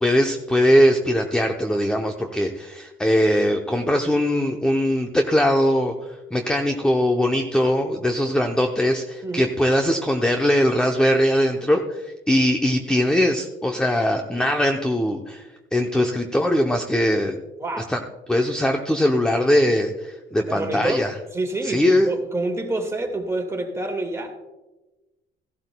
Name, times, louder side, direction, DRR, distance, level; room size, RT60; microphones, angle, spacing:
voice 1, 0.0-5.9 6.3-15.5 15.7-17.4 17.9-18.0 18.3-21.1 21.6-22.1, equal, 5° left, 4 dB, 0.6 m, -21 dB
voice 2, 17.6-17.9 20.4-21.0 21.3-24.4, right 2 dB, 15° right, 3 dB, 1.8 m, -27 dB
15.5 x 12.0 x 2.2 m, 1.1 s
cardioid pair, 120°, 19 cm